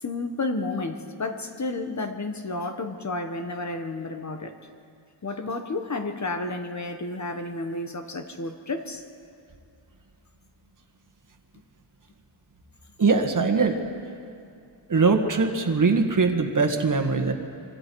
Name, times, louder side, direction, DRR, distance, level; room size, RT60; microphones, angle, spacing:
voice 1, 0.0-4.6 5.2-9.0, left 2 dB, 35° left, 6 dB, 1.2 m, -31 dB
voice 2, 13.0-13.8 14.9-17.3, right 4 dB, 40° right, 4 dB, 1.8 m, -21 dB
25.0 x 25.0 x 4.7 m, 2.4 s
wide cardioid pair, 115°, 49 cm